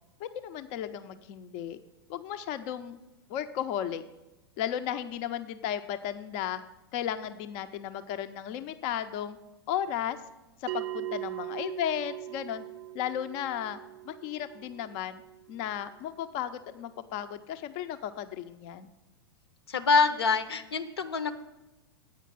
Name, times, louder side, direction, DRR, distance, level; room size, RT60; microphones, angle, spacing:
voice 1, 0.2-1.8 2.1-3.0 3.3-4.0 4.6-6.6 6.9-9.4 9.7-10.2 10.6-12.6 12.9-13.8 14.0-15.2 15.5-18.9, left 10 dB, 40° left, 9 dB, 0.5 m, -34 dB
Bell, 10.7-15.7, right 16 dB, 45° right, 0.4 m, -40 dB
voice 2, 19.7-21.3, left 4 dB, 75° left, 12 dB, 0.7 m, -25 dB
8.4 x 5.1 x 7.5 m, 1.0 s
figure-of-eight pair, 105°, 13 cm